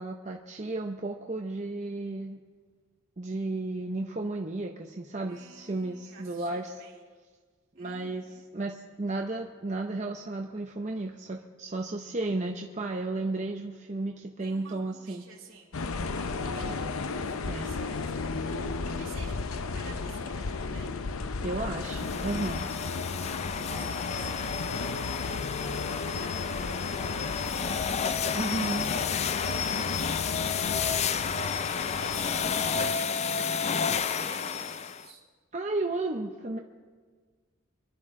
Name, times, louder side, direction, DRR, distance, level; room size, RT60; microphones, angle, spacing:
voice 1, 0.0-2.4 3.2-6.7 7.8-15.3 17.5-17.7 21.4-22.7 28.3-28.9 35.5-36.6, right 2 dB, 35° right, 2 dB, 0.6 m, -33 dB
voice 2, 5.3-7.0 7.7-8.4 14.4-15.7 16.0-20.9 23.3-29.0 29.5-35.2, right 4 dB, 65° right, -4 dB, 3.4 m, -51 dB
sound 1, 15.7-32.9, left 4 dB, 75° left, 0.7 m, -34 dB
sound 2, 21.8-35.1, left 6 dB, 30° left, 0.3 m, -31 dB
25.5 x 11.0 x 3.7 m, 1.6 s
head